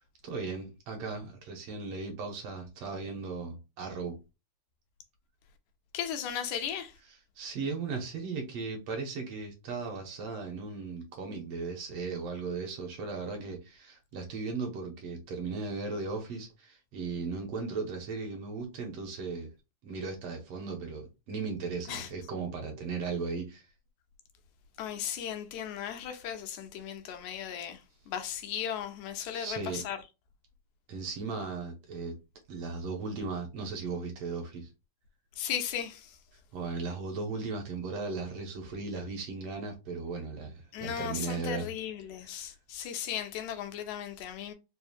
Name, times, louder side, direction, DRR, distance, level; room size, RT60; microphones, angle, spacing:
voice 1, 0.2-4.2 7.4-19.5 19.8-23.6 29.3-29.8 30.9-32.2 32.5-34.7 36.5-41.7 42.2-42.3, right 4 dB, 65° right, 1.9 m, -37 dB
voice 2, 5.9-6.9 21.9-22.1 24.8-27.8 28.1-30.0 35.4-36.1 40.7-44.5, left 9 dB, 80° left, 2.1 m, -36 dB
4.9 x 2.8 x 2.7 m
omnidirectional pair, 3.4 m